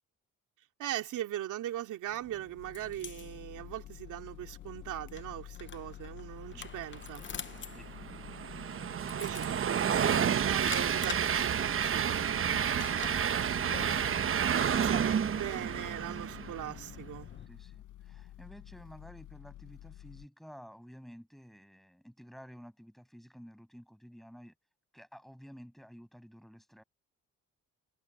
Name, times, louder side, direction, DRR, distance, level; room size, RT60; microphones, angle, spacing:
voice 1, 0.8-7.2 9.1-13.0 14.5-17.3, right 13 dB, 85° right, 3.0 m, -40 dB
sound 1, 2.1-17.5, left 7 dB, 40° left, 1.0 m, -48 dB
sound 2, 2.6-20.3, left 13 dB, 80° left, 1.1 m, -50 dB
Train, 7.3-16.7, right 8 dB, 45° right, 1.0 m, -30 dB
voice 2, 17.5-24.5 24.9-26.8, equal, ahead, 6.9 m, -52 dB
cardioid pair, 90°, 30 cm